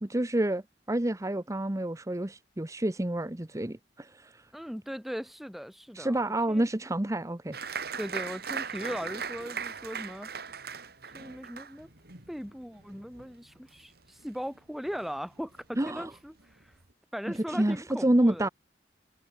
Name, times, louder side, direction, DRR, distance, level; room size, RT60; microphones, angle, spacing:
voice 1, 0.0-0.6 0.9-4.4 5.9-7.8 15.8-16.1 17.5-18.5, right 1 dB, 20° right, 0.9 m, -28 dB
voice 2, 4.5-6.6 8.0-10.3 11.1-11.9 12.3-16.7 17.1-18.5, equal, ahead, 1.8 m, -39 dB
Applause, 7.5-14.6 14.9-15.6 16.0-16.1 16.4-16.9, right 6 dB, 60° right, 4.0 m, -39 dB
head